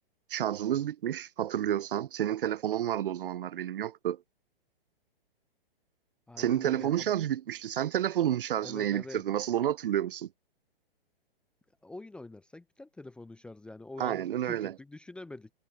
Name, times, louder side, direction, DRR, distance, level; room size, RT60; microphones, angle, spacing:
voice 1, 0.3-4.2 6.4-10.3 14.0-14.7, right 11 dB, 65° right, 0.7 m, -30 dB
voice 2, 6.3-7.1 8.6-9.2 11.8-15.5, left 2 dB, 5° left, 0.5 m, -45 dB
hypercardioid pair, 130°, 29 cm